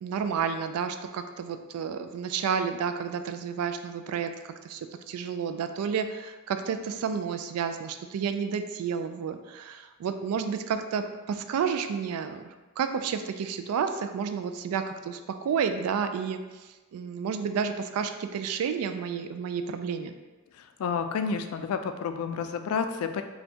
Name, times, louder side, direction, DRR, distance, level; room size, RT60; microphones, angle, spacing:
voice 1, 0.0-16.4 16.9-20.1, right 6 dB, 85° right, 12 dB, 0.3 m, -31 dB
voice 2, 20.6-23.2, left 6 dB, 80° left, 8 dB, 0.3 m, -30 dB
4.3 x 2.2 x 2.7 m, 1.2 s
head